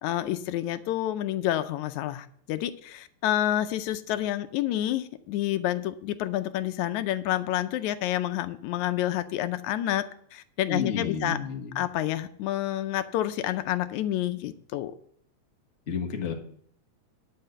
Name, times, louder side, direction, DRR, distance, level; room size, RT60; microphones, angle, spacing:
voice 1, 0.0-10.0 10.3-11.4 11.8-14.9, left 13 dB, 80° left, 11 dB, 1.9 m, -29 dB
voice 2, 10.7-11.8 15.9-16.3, left 5 dB, 40° left, 2 dB, 1.1 m, -31 dB
10.0 x 5.8 x 7.7 m, 0.63 s
omnidirectional pair, 3.4 m